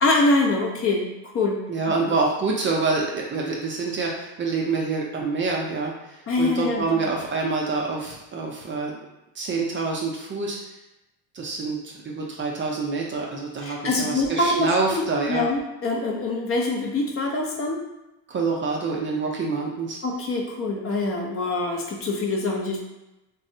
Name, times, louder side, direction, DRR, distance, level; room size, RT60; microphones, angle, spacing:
voice 1, 0.0-1.6 2.1-2.2 6.3-6.8 13.6-17.8 20.0-22.8, left 2 dB, 35° left, 0 dB, 0.5 m, -24 dB
voice 2, 1.7-9.0 9.4-10.6 11.3-15.5 18.3-20.0, right 4 dB, 30° right, -1 dB, 0.4 m, -26 dB
3.3 x 2.0 x 2.6 m, 0.96 s
cardioid pair, 110°, 40 cm